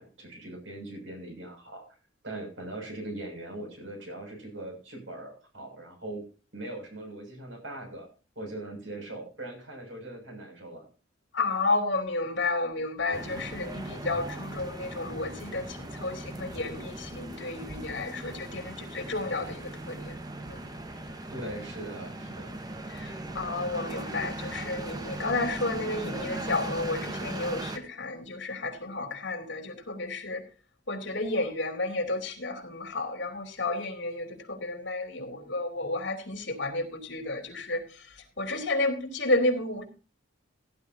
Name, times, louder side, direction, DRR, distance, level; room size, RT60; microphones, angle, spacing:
voice 1, 0.0-2.0 2.2-6.2 6.5-8.1 8.4-10.9 21.3-22.6, right 1 dB, 80° right, 3 dB, 6.8 m, -40 dB
voice 2, 11.3-20.2 20.5-20.7 22.9-30.4 30.9-38.1 38.4-39.9, left 2 dB, 70° left, 6 dB, 3.2 m, -31 dB
sound 1, 13.1-27.8, right 1 dB, 20° right, 1.3 m, -38 dB
17.5 x 11.0 x 2.8 m, 0.35 s
head